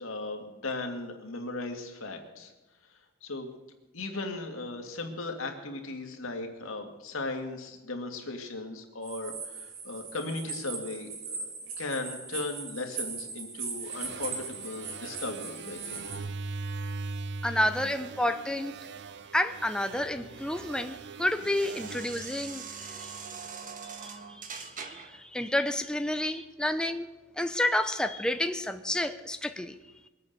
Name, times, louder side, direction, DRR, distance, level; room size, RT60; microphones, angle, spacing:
voice 1, 0.0-2.5 3.2-3.5 3.9-16.0, left 2 dB, 75° left, 4 dB, 2.3 m, -37 dB
sound 1, 9.0-16.2, right 5 dB, 80° right, 4.2 m, -39 dB
sound 2, 13.8-23.3, right 3 dB, 60° right, 0.6 m, -41 dB
voice 2, 17.4-18.8 19.3-23.1 24.0-27.1 27.4-29.8, left 1 dB, 5° left, 8 dB, 0.6 m, -30 dB
sound 3, 19.4-25.2, right 5 dB, 40° right, 1.5 m, -44 dB
22.0 x 8.7 x 6.8 m, 1.1 s
head